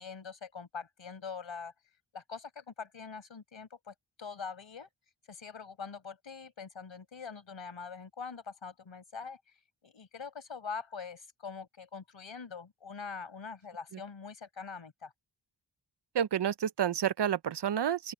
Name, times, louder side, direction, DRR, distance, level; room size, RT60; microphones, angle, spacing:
voice 1, 0.0-1.7 2.1-4.9 5.3-9.4 9.8-15.1, left 5 dB, 85° left, 6.4 m, -43 dB
voice 2, 16.1-18.1, right 9 dB, 60° right, 0.6 m, -29 dB
open air
wide cardioid pair, 80°, 45 cm